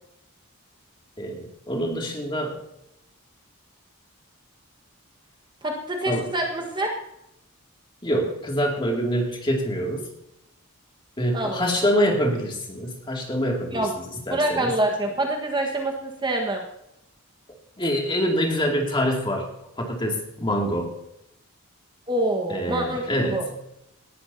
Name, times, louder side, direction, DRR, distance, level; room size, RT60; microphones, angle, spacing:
voice 1, 1.2-2.6 6.1-6.3 8.0-10.1 11.2-14.7 17.8-19.5 19.8-20.9 22.5-23.5, equal, 20° left, 1 dB, 2.4 m, -25 dB
voice 2, 5.6-6.9 11.3-11.9 13.7-13.9 14.3-16.6 22.1-23.4, right 1 dB, 20° right, 1 dB, 1.5 m, -26 dB
18.5 x 13.0 x 2.8 m, 0.81 s
head